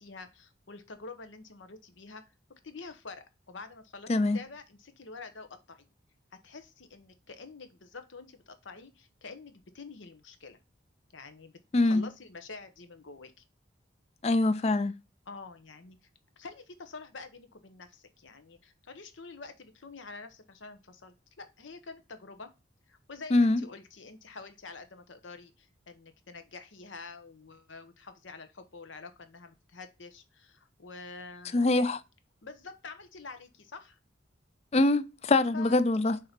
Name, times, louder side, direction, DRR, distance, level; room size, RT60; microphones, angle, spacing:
voice 1, 0.0-2.2 2.5-5.9 6.4-10.6 11.1-11.5 11.8-13.4 15.3-16.0 16.4-22.5 22.9-31.5 32.4-34.0 35.5-35.8, left 4 dB, 85° left, 1.0 m, -47 dB
voice 2, 11.7-12.1 14.2-14.9 23.3-23.6 31.5-32.0 34.7-36.2, left 2 dB, 35° left, 0.4 m, -24 dB
6.6 x 2.8 x 5.2 m
head